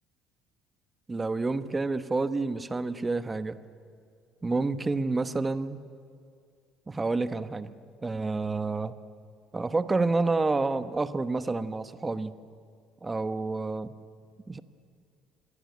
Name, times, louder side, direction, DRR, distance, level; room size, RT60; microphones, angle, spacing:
voice 1, 1.1-3.6 4.4-5.8 6.9-7.7 8.0-8.9 9.5-12.3 13.0-13.9 14.5-14.6, right 3 dB, 15° right, 11 dB, 1.0 m, -29 dB
27.0 x 21.0 x 9.4 m, 2.3 s
cardioid pair, 130°, 0 cm